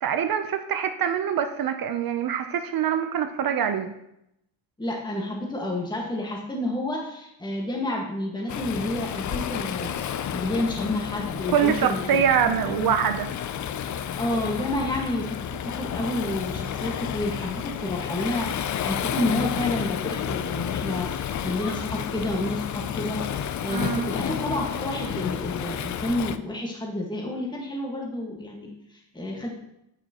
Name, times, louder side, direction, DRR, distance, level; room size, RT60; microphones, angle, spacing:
voice 1, 0.0-3.9 11.5-13.3 23.7-24.1, right 8 dB, 45° right, 8 dB, 0.7 m, -24 dB
voice 2, 4.8-9.9 10.3-12.9 14.2-15.5 15.8-29.5, left 1 dB, 10° left, -1 dB, 1.6 m, -30 dB
Waves surf, 8.5-26.4, left 9 dB, 40° left, 0.5 m, -31 dB
9.0 x 8.6 x 3.0 m, 0.81 s
cardioid pair, 95°, 48 cm